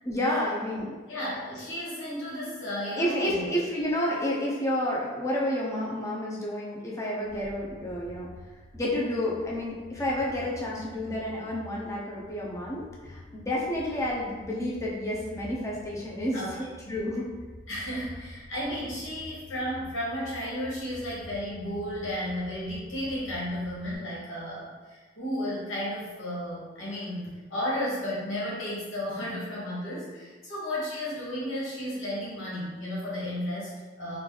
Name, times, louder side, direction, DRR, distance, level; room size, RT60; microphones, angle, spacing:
voice 1, 0.0-0.9 3.0-8.3 8.7-17.2, left 1 dB, 15° left, -4 dB, 0.5 m, -30 dB
voice 2, 1.1-3.5 16.3-16.6 16.8-16.9 17.7-34.2, equal, 90° left, -7 dB, 1.4 m, -33 dB
sound 1, 7.2-23.9, left 1 dB, 60° left, 0.5 m, -48 dB
3.2 x 2.4 x 3.8 m, 1.4 s
head